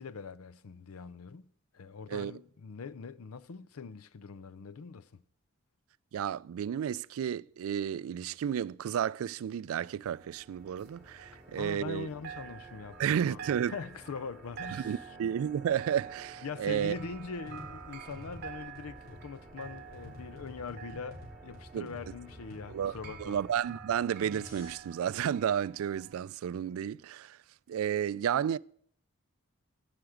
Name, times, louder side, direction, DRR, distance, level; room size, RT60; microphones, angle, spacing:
voice 1, 0.0-5.2 11.5-13.0 13.3-15.0 16.4-23.4, left 5 dB, 90° left, 0.5 m, -42 dB
voice 2, 6.1-12.1 13.0-13.7 14.7-17.0 21.7-21.9 22.7-27.4 27.7-28.6, right 9 dB, 75° right, 0.3 m, -32 dB
sound 1, 9.9-23.6, equal, ahead, 3.3 m, -55 dB
sound 2, 10.1-12.0 12.2-26.1, right 8 dB, 50° right, 1.0 m, -49 dB
sound 3, 16.9-24.8, left 1 dB, 45° left, 4.2 m, -50 dB
15.5 x 5.9 x 5.0 m
head